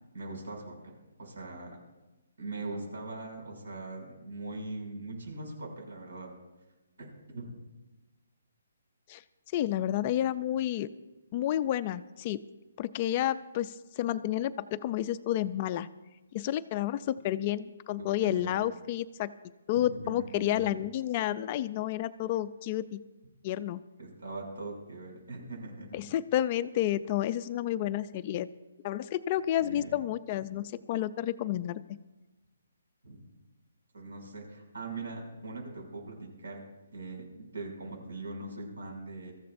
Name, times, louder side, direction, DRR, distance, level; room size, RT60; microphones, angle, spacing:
voice 1, 0.1-1.8 2.4-6.3 7.0-7.5 18.0-18.5 19.7-20.8 24.0-26.0 29.6-29.9 33.0-33.3 33.9-36.6 36.9-39.3, right 2 dB, 80° right, 1 dB, 6.3 m, -41 dB
voice 2, 9.5-10.9 11.3-12.4 12.8-15.9 16.3-19.3 19.7-23.0 23.4-23.8 25.9-28.5 28.8-32.0, left 12 dB, 25° left, 14 dB, 0.3 m, -30 dB
23.0 x 14.5 x 2.6 m, 1.1 s
hypercardioid pair, 170°, 0 cm